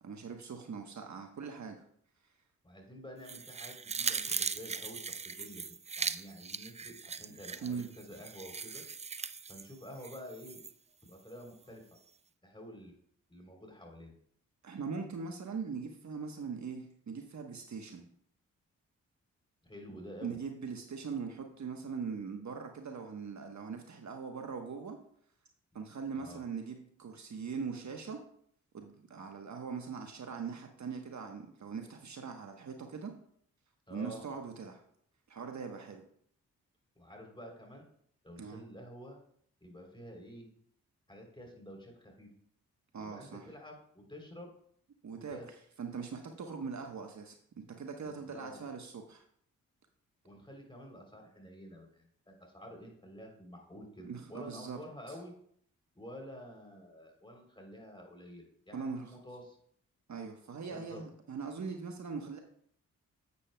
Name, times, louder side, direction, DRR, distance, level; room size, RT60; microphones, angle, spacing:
voice 1, 0.0-1.8 7.6-7.9 14.6-18.0 20.2-25.0 25.7-28.2 28.7-33.1 33.9-34.8 35.3-36.0 38.4-38.6 42.9-43.4 45.0-45.4 45.8-49.2 54.0-54.8 55.1-55.2 58.7-59.1 60.1-62.4, right 5 dB, 50° right, 4 dB, 1.1 m, -41 dB
voice 2, 2.6-5.7 6.0-8.8 9.5-10.6 11.0-12.0 12.4-12.9 13.3-14.1 19.6-20.4 26.2-26.4 33.9-34.3 36.9-37.9 38.2-39.2 39.6-40.5 41.1-42.3 43.0-44.5 45.1-45.5 48.0-48.6 50.2-55.3 55.9-59.6 60.7-61.0, equal, 15° left, 1 dB, 3.2 m, -49 dB
sound 1, 3.2-10.7 11.1-11.2, right 5 dB, 20° right, 0.4 m, -39 dB
9.5 x 8.5 x 2.2 m, 0.64 s
supercardioid pair, 45°, 36 cm